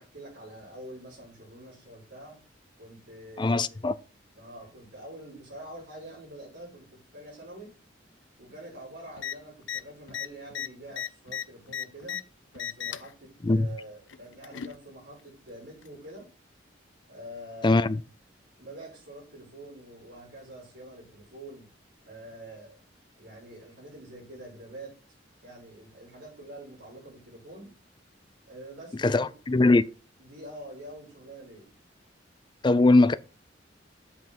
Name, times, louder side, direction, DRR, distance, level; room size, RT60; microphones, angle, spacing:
voice 1, 0.0-2.4 2.8-3.8 4.3-7.7 8.4-12.3 12.5-16.3 17.1-17.9 18.6-21.7 22.1-22.8 23.2-25.0 25.4-27.8 28.5-29.3 30.2-31.7, right 1 dB, 70° right, 5.2 m, -46 dB
voice 2, 3.4-3.9 13.4-13.7 17.6-18.0 29.0-29.8 32.6-33.1, left 2 dB, 25° left, 0.4 m, -21 dB
sound 1, 9.2-9.3 9.6-9.8 10.1-12.2 12.5-13.1 14.1-14.8 15.8-15.9, left 9 dB, 80° left, 0.5 m, -35 dB
7.9 x 5.5 x 4.5 m
head